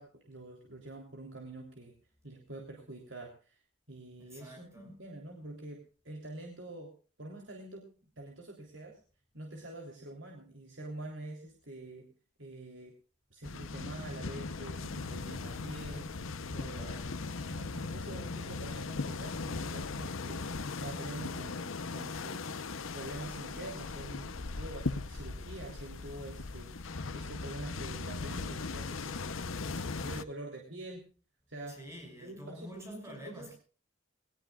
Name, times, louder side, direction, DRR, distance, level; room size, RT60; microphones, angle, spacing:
voice 1, 0.0-2.0 2.2-3.6 3.9-6.9 7.2-7.9 8.2-9.0 9.3-12.1 12.4-12.9 13.3-16.9 17.4-29.4 29.7-31.0 31.5-31.8 32.2-33.5, right 2 dB, 70° right, 3.5 m, -46 dB
voice 2, 4.2-4.9 16.6-17.2 31.7-33.5, equal, 15° right, 6.6 m, -48 dB
sound 1, 13.4-30.2, left 3 dB, 90° left, 0.9 m, -38 dB
21.5 x 19.5 x 2.4 m
head